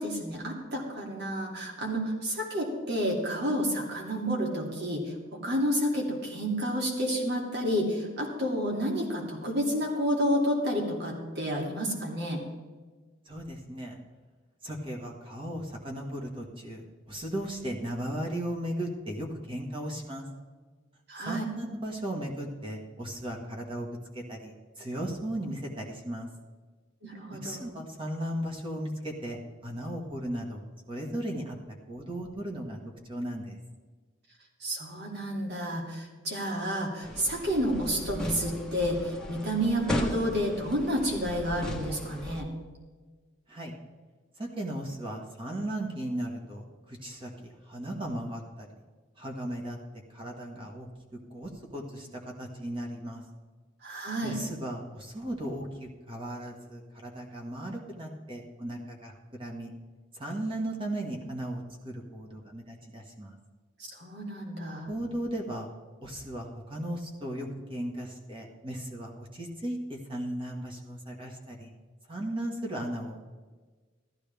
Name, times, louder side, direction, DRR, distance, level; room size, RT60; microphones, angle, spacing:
voice 1, 0.0-12.4 21.1-21.5 27.0-27.6 34.6-42.5 53.8-54.4 64.0-64.9, equal, 60° right, -1 dB, 2.7 m, -30 dB
voice 2, 13.2-14.0 14.6-20.3 21.2-23.9 24.1-26.3 27.4-31.6 31.9-32.8 33.1-33.6 43.5-43.7 44.4-48.7 49.2-49.8 50.1-53.2 54.2-59.7 60.1-63.4 64.9-65.7 66.0-71.7 72.1-73.3, right 1 dB, 30° right, 0 dB, 1.6 m, -36 dB
sound 1, 37.0-42.4, equal, 5° left, 1.2 m, -36 dB
14.5 x 12.5 x 3.5 m, 1.4 s
head